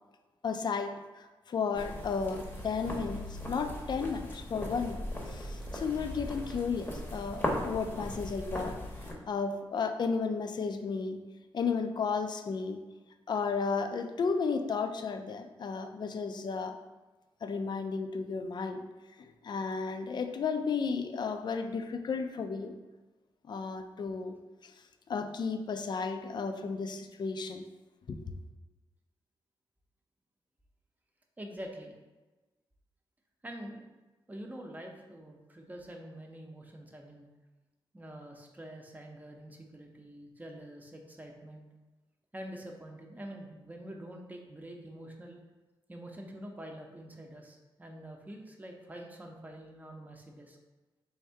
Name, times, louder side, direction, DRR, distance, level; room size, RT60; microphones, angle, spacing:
voice 1, 0.4-8.8 9.3-11.2 11.5-12.8 13.3-16.8 17.4-18.8 19.2-22.7 23.5-24.3 24.6-24.7 25.1-27.7 28.1-28.3, left 5 dB, 50° left, 7 dB, 0.4 m, -33 dB
sound 1, 1.7-9.1, left 1 dB, 20° left, 0.8 m, -38 dB
voice 2, 31.4-31.9 33.4-33.8 34.3-37.3 37.9-41.7 42.3-45.4 45.9-50.6, right 1 dB, 15° right, 1 dB, 0.7 m, -46 dB
3.4 x 2.6 x 4.5 m, 1.2 s
cardioid pair, 80°, 9 cm